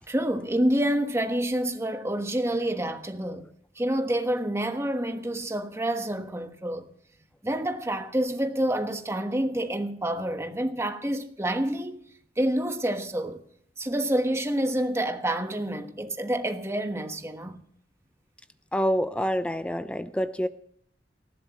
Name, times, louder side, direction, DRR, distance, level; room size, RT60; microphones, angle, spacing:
voice 1, 0.1-3.5 3.8-6.9 7.4-12.0 12.4-13.4 13.8-17.6, right 1 dB, 15° right, 1.3 m, -28 dB
voice 2, 18.7-20.5, equal, 5° left, 0.5 m, -27 dB
19.5 x 15.0 x 3.1 m
head